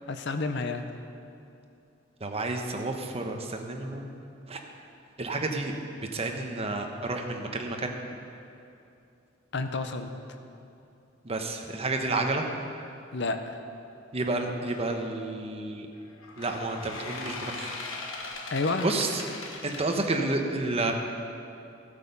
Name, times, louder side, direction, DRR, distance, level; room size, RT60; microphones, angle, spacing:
voice 1, 0.1-0.9 9.5-10.1 13.1-13.4 18.5-18.9, left 3 dB, 65° left, 7 dB, 0.8 m, -29 dB
voice 2, 2.2-4.0 4.5-4.6 5.2-5.7 6.1-8.0 11.2-12.4 14.1-15.9 16.4-17.8 18.8-19.1 19.6-20.9, right 2 dB, 30° right, 3 dB, 1.0 m, -30 dB
sound 1, 14.6-14.9 16.2-19.8, left 3 dB, 80° left, 1.3 m, -39 dB
15.0 x 8.3 x 5.5 m, 2.7 s
head